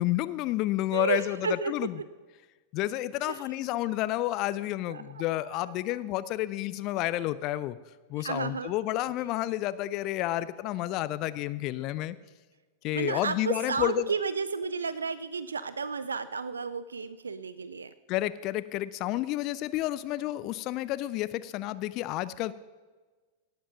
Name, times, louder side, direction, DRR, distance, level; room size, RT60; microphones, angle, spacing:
voice 1, 0.0-1.4 1.7-1.9 2.7-7.8 8.1-12.2 12.8-14.0 18.1-22.5, left 15 dB, 40° left, 16 dB, 0.4 m, -30 dB
voice 2, 0.9-1.9 3.2-3.4 4.9-6.0 8.2-8.7 12.9-17.9, right 5 dB, 75° right, 15 dB, 0.4 m, -33 dB
17.0 x 7.4 x 5.8 m, 1.3 s
figure-of-eight pair, 90°, 0 cm